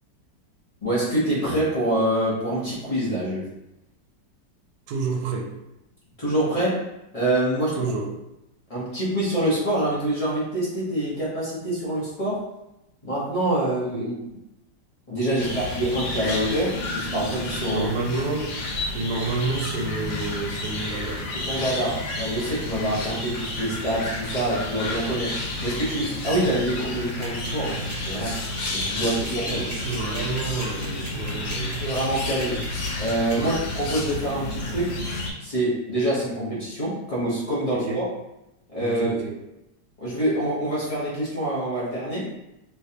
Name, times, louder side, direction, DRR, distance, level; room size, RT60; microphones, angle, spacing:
voice 1, 0.8-3.4 6.2-6.8 7.1-7.8 8.7-12.4 13.0-14.1 15.1-17.8 21.4-28.4 28.7-29.7 31.8-32.6 33.0-35.0 35.4-38.0 38.7-39.2 40.0-42.3, right 1 dB, 35° left, -9 dB, 0.6 m, -26 dB
voice 2, 4.9-5.5 7.8-8.1 13.9-14.1 17.6-18.5 18.9-21.2 22.9-23.1 28.9-31.7 33.3-33.6 37.8-38.0 38.8-39.3, right 3 dB, 65° right, 1 dB, 1.1 m, -30 dB
sound 1, 15.4-35.3, left 2 dB, 80° left, 1.4 m, -31 dB
sound 2, 27.0-33.3, right 1 dB, 25° right, 1.5 m, -39 dB
3.3 x 3.0 x 2.8 m, 0.90 s
omnidirectional pair, 2.0 m